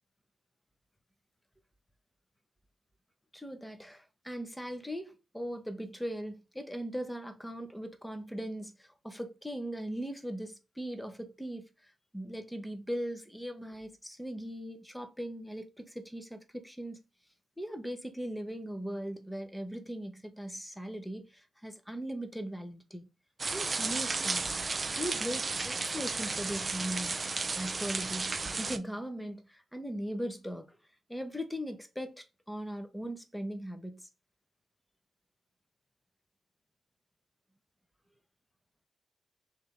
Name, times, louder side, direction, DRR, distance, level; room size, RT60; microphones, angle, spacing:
voice 1, 3.3-17.0 17.6-23.1 23.5-24.4 25.0-27.2 27.6-30.8 31.1-34.1, equal, 5° left, 0.9 m, -39 dB
sound 1, 23.4-28.8, right 3 dB, 45° right, 0.4 m, -33 dB
3.3 x 2.8 x 3.6 m
supercardioid pair, 45°, 0 cm